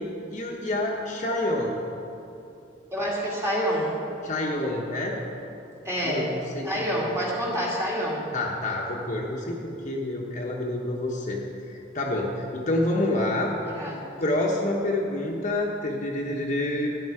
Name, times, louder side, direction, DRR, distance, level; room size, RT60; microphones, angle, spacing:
voice 1, 0.0-1.8 4.2-5.2 6.0-6.7 7.0-7.1 8.3-11.4 11.7-13.5 14.2-16.9, left 1 dB, 40° left, -2 dB, 1.2 m, -28 dB
voice 2, 2.9-4.0 5.8-6.3 6.6-8.3 13.6-14.1, equal, 15° right, -5 dB, 2.7 m, -27 dB
12.5 x 10.5 x 4.9 m, 2.8 s
head